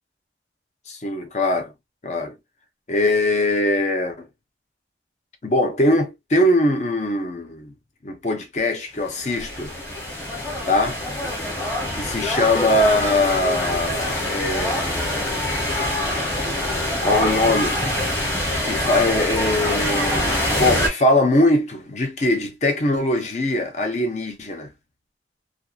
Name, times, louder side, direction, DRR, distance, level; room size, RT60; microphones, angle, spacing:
voice 1, 0.9-1.7 2.0-2.3 2.9-4.3 5.4-7.7 8.0-9.7 10.7-11.0 11.9-15.6 17.0-17.8 18.6-24.7, left 1 dB, 40° left, 0.6 m, -21 dB
sound 1, 9.0-20.9, left 1 dB, 15° left, 1.1 m, -25 dB
2.6 x 2.3 x 2.2 m
head